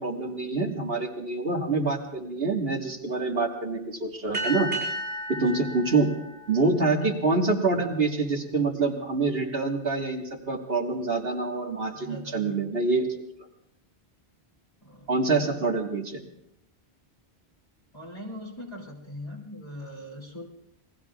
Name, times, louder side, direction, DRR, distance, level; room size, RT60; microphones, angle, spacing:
voice 1, 0.0-4.7 5.3-6.1 6.5-13.1 15.1-16.2, right 3 dB, 65° right, 1 dB, 2.0 m, -26 dB
sound 1, 4.3-7.3, right 1 dB, 90° right, 7.4 m, -34 dB
voice 2, 5.3-5.7 6.8-6.9 11.9-12.7 14.8-15.3 17.9-20.5, left 1 dB, 25° left, -1 dB, 2.9 m, -41 dB
28.0 x 21.5 x 2.4 m, 0.80 s
omnidirectional pair, 1.1 m